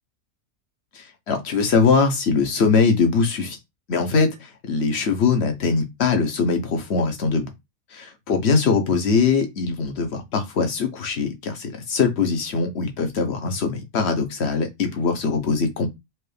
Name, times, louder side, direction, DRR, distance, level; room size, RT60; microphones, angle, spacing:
voice 1, 1.3-3.6 3.9-4.3 4.7-7.5 7.9-15.9, left 5 dB, 50° left, 1.1 m, -21 dB
4.5 x 2.5 x 3.3 m
omnidirectional pair, 1.5 m